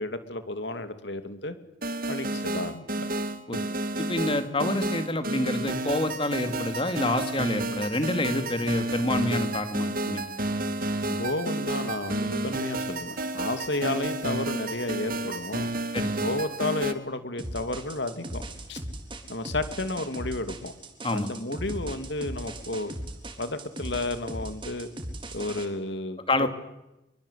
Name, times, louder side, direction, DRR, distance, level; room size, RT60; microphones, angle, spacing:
voice 1, 0.0-1.5 2.1-3.1 11.1-15.7 16.2-18.4 18.7-18.8 19.3-20.7 21.1-22.9 23.4-24.9 25.3-26.5, left 2 dB, 65° left, 9 dB, 2.7 m, -32 dB
sound 1, 1.8-16.9, right 2 dB, 50° right, 2.2 m, -31 dB
voice 2, 4.0-10.3 11.1-11.2 15.9-16.1 21.0-21.3 26.3-26.5, left 2 dB, 30° left, 9 dB, 2.3 m, -28 dB
sound 2, 17.4-25.7, right 1 dB, 25° right, 3.6 m, -38 dB
26.0 x 23.0 x 8.4 m, 0.92 s
head